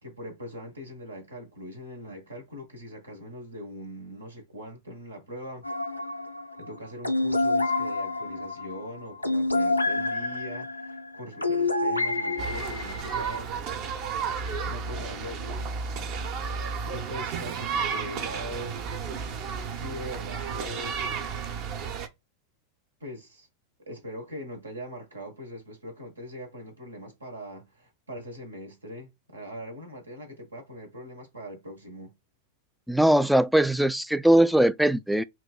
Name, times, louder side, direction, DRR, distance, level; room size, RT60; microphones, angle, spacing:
voice 1, 0.0-5.7 6.6-13.5 14.7-15.7 16.8-18.8 19.7-21.0 23.0-23.5 23.9-32.1, equal, 75° right, 1.1 m, -41 dB
sound 1, 5.6-13.4, left 2 dB, 90° left, 0.6 m, -28 dB
sound 2, 12.4-22.1, right 5 dB, 40° right, 0.8 m, -32 dB
voice 2, 32.9-35.2, right 1 dB, ahead, 0.3 m, -20 dB
6.0 x 2.6 x 2.2 m
figure-of-eight pair, 90°, 0 cm